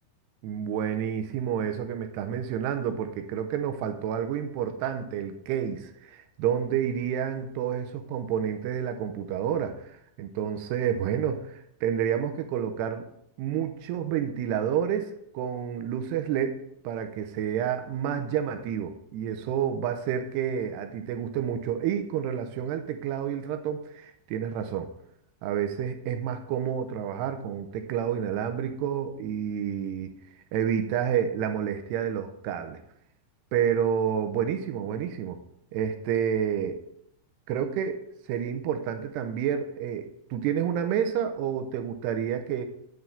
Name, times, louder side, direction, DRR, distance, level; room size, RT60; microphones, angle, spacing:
voice 1, 0.4-13.1 13.4-24.9 25.4-30.1 30.5-32.8 33.5-35.4 35.7-36.8 37.5-38.0 38.3-42.7, right 9 dB, 80° right, 8 dB, 2.7 m, -29 dB
9.8 x 4.6 x 7.0 m, 0.73 s
omnidirectional pair, 5.1 m